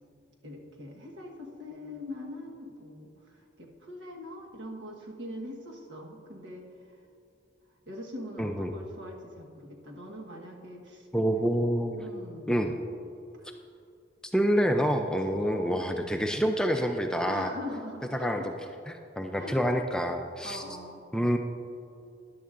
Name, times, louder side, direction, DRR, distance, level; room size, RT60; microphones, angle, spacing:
voice 1, 0.4-3.1 3.6-6.7 7.9-11.1 12.0-12.6 13.4-13.5 15.4-16.3 17.2-18.6 19.3-19.6 20.4-21.0, left 1 dB, 80° right, 0 dB, 1.3 m, -42 dB
voice 2, 8.4-8.8 11.1-12.0 12.5-12.8 14.3-17.5 18.1-18.4 18.9-20.6 21.1-21.4, equal, 5° left, 4 dB, 0.3 m, -27 dB
14.0 x 10.0 x 2.5 m, 2.5 s
head